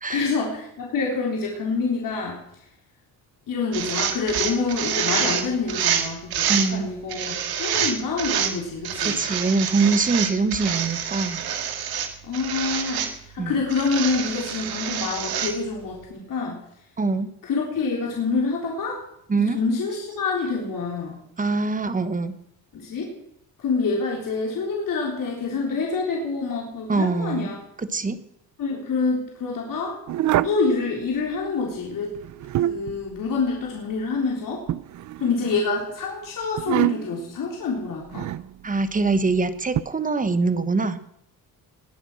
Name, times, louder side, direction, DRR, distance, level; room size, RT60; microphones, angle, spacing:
voice 1, 0.1-2.4 3.5-9.2 12.2-13.0 13.3-16.6 17.4-19.0 19.5-21.2 22.7-23.1 23.6-27.6 28.6-30.0 30.4-32.1 32.6-34.6 35.2-38.3, left 4 dB, 55° left, -2 dB, 3.9 m, -26 dB
sound 1, 3.7-6.7 7.1-8.5 8.8-12.1 12.3-13.1 13.7-15.5, right 8 dB, 70° right, 2.1 m, -27 dB
voice 2, 6.5-6.9 9.0-11.4 13.4-13.6 17.0-17.3 19.3-19.6 21.4-22.3 26.9-27.5 27.9-28.2 38.6-41.1, right 3 dB, 20° right, 12 dB, 1.1 m, -23 dB
sound 2, 30.1-30.6 32.2-33.0 34.7-35.6 36.6-37.2 38.1-38.5 39.7-39.8, right 13 dB, 50° right, 0.5 m, -25 dB
20.5 x 8.1 x 6.3 m, 0.77 s
cardioid pair, 125°, 38 cm